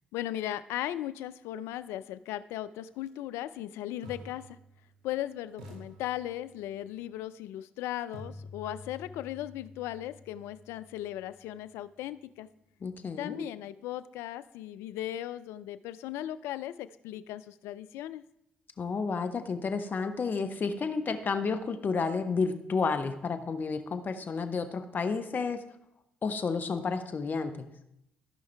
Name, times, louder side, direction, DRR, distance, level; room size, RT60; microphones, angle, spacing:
voice 1, 0.1-4.6 5.0-12.5 13.2-18.2, left 13 dB, 75° left, 15 dB, 0.4 m, -37 dB
sound 1, 2.9-3.1 4.0-5.2 5.6-6.8 8.1-12.0, left 1 dB, 80° right, 2.3 m, -50 dB
voice 2, 12.8-13.4 18.8-25.6 26.2-27.7, left 4 dB, 45° left, 8 dB, 1.0 m, -31 dB
15.5 x 5.4 x 3.4 m, 0.80 s
hypercardioid pair, 45°, 4 cm